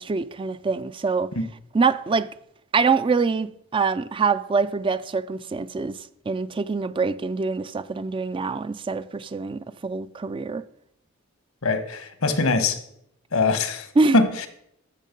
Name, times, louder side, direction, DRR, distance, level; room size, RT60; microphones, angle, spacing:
voice 1, 0.0-1.3 1.7-2.3 2.7-6.0 6.3-10.6 14.0-14.2, right 4 dB, 25° right, 0.4 m, -24 dB
voice 2, 11.6-12.8 13.3-13.9 14.1-14.5, left 3 dB, 80° left, 1.2 m, -22 dB
14.0 x 6.4 x 5.3 m
head